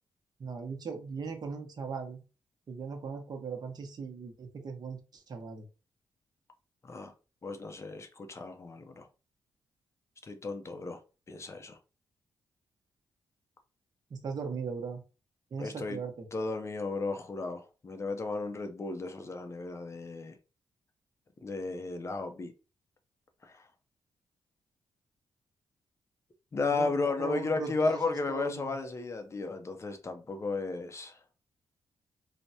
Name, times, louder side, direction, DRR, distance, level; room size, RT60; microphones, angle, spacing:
voice 1, 0.4-2.2 2.7-5.6 14.1-15.0 15.5-16.3 26.6-26.9 27.2-28.8, right 5 dB, 55° right, 0.7 m, -39 dB
voice 2, 7.4-9.1 10.2-11.0 11.3-11.8 15.6-16.0 16.3-20.4 21.4-22.5 23.4-23.7 26.5-31.2, left 3 dB, 35° left, 0.5 m, -34 dB
3.3 x 2.1 x 2.7 m
cardioid pair, 75°, 8 cm